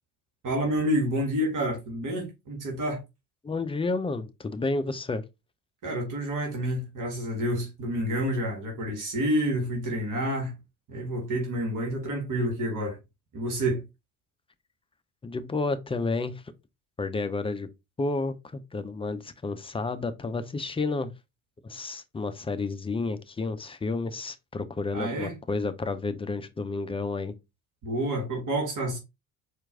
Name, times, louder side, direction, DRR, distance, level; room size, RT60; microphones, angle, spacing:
voice 1, 0.4-3.0 5.8-10.6 10.9-13.0 13.3-13.8 24.9-25.3 27.8-29.0, right 1 dB, 45° right, 1.5 m, -29 dB
voice 2, 3.4-5.2 15.2-16.4 17.0-17.7 18.0-21.1 21.6-27.3, left 3 dB, 15° left, 0.5 m, -31 dB
4.5 x 2.5 x 3.6 m
figure-of-eight pair, 55°, 42 cm